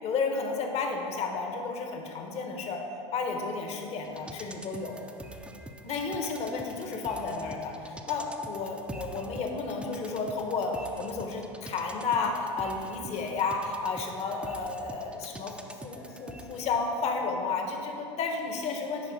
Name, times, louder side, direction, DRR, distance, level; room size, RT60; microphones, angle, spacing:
voice 1, 0.0-2.8 3.1-5.0 5.8-19.1, left 4 dB, 45° left, 3 dB, 1.1 m, -32 dB
sound 1, 4.0-16.9 17.2-17.3, right 1 dB, 5° right, 0.5 m, -46 dB
10.5 x 4.2 x 4.1 m, 2.9 s
hypercardioid pair, 90°, 15 cm